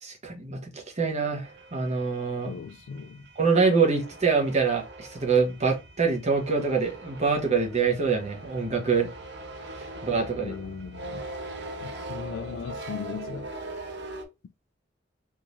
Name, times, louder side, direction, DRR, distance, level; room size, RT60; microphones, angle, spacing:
voice 1, 0.0-2.5 3.4-9.1 9.8-10.5, right 5 dB, 40° right, 0.9 m, -25 dB
sound 1, 1.4-14.2, right 2 dB, 65° right, 0.7 m, -41 dB
voice 2, 2.4-3.3 10.4-11.3 11.8-13.5, left 6 dB, 80° left, 0.3 m, -38 dB
3.6 x 3.0 x 2.5 m
head